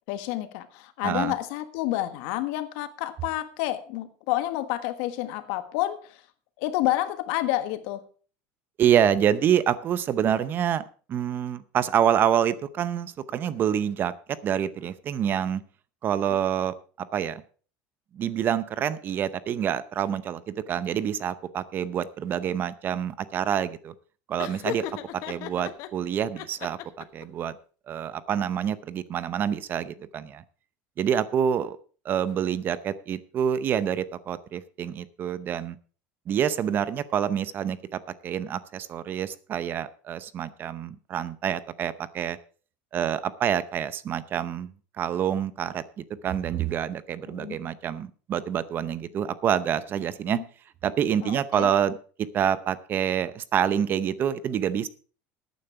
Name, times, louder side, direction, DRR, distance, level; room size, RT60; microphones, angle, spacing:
voice 1, 0.1-6.2 6.6-8.0 47.3-47.6 50.3-50.4 51.2-51.7, left 15 dB, 70° left, 10 dB, 1.6 m, -29 dB
voice 2, 1.0-1.3 8.8-10.8 11.1-14.1 14.4-15.6 16.0-17.4 18.1-23.9 24.3-24.8 25.3-26.8 27.1-27.5 27.9-30.4 31.0-31.8 32.0-35.8 36.3-42.4 42.9-44.7 45.0-50.4 50.8-54.9, right 9 dB, 35° right, 16 dB, 0.7 m, -27 dB
Laughter, 24.4-25.9 26.4-27.2, left 11 dB, 55° left, 1.2 m, -35 dB
14.0 x 9.3 x 4.8 m, 0.40 s
cardioid pair, 150°, 6 cm